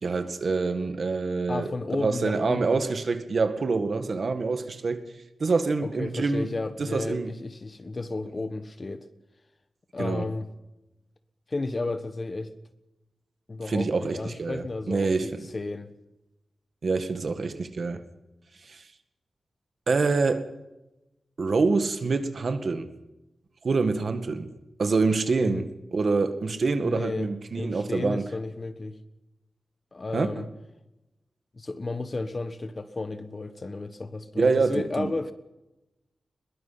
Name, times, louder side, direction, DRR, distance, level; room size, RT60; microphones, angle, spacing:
voice 1, 0.0-1.7 2.0-5.1 5.4-6.5 6.8-7.3 10.0-10.3 13.7-15.4 16.8-18.0 18.7-18.8 19.9-20.4 21.4-22.9 23.6-24.5 24.8-28.3 30.1-30.3 34.4-35.1, right 4 dB, 50° right, 1.9 m, -26 dB
voice 2, 1.5-2.9 5.8-9.1 9.9-10.5 11.5-12.5 13.5-15.9 25.4-25.7 26.8-27.3 27.6-29.0 29.9-30.5 31.5-35.3, left 3 dB, 30° left, 1.4 m, -33 dB
22.0 x 21.5 x 5.9 m
wide cardioid pair, 170°, 0 cm